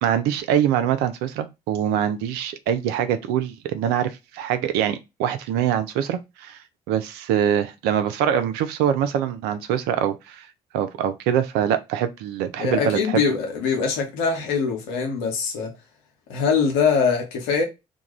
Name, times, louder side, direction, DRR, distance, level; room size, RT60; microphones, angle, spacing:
voice 1, 0.0-6.6 6.9-10.5 10.7-13.2, right 9 dB, 65° right, 0.5 m, -24 dB
voice 2, 12.6-15.7 16.3-17.6, left 5 dB, 75° left, 0.9 m, -22 dB
2.4 x 2.2 x 3.0 m
figure-of-eight pair, 45°, 18 cm